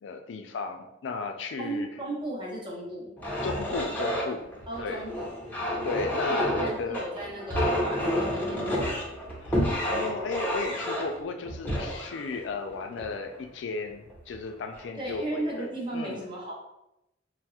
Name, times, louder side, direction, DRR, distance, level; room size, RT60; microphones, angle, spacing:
voice 1, 0.0-1.9 3.4-4.5 4.8-5.0 5.8-7.0 9.4-15.7 15.9-16.2, left 4 dB, 70° left, 6 dB, 0.3 m, -35 dB
voice 2, 1.6-3.1 4.7-5.3 6.3-9.0 15.0-16.5, right 1 dB, 25° right, -3 dB, 0.7 m, -36 dB
sound 1, 3.2-13.4 14.1-14.3 14.8-15.2, equal, 10° left, 0.6 m, -30 dB
4.2 x 2.0 x 2.3 m, 0.87 s
head